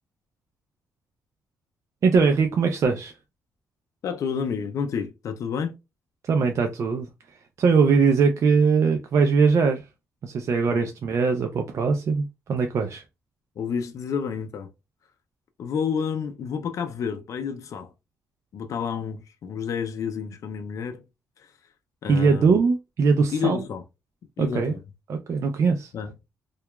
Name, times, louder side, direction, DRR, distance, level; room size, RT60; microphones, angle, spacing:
voice 1, 2.0-3.1 6.2-7.1 7.6-9.8 10.2-13.0 22.1-23.6 24.4-24.8 25.1-25.9, right 5 dB, 55° right, 0.4 m, -21 dB
voice 2, 4.0-5.8 10.7-10.9 13.6-14.7 15.6-17.9 18.5-21.0 22.0-22.5 23.3-23.8 24.4-24.8 25.9-26.1, left 7 dB, 60° left, 0.4 m, -29 dB
2.8 x 2.3 x 2.2 m
cardioid pair, 90°, 6 cm